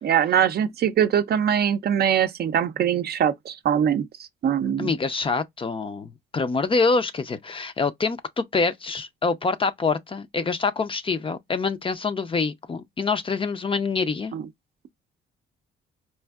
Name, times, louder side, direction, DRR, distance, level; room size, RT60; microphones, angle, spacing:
voice 1, 0.0-4.1 4.4-4.9 14.3-14.5, right 9 dB, 55° right, 0.5 m, -22 dB
voice 2, 4.8-14.3, left 4 dB, 25° left, 0.4 m, -26 dB
4.3 x 2.5 x 2.3 m
cardioid pair, 90°, 20 cm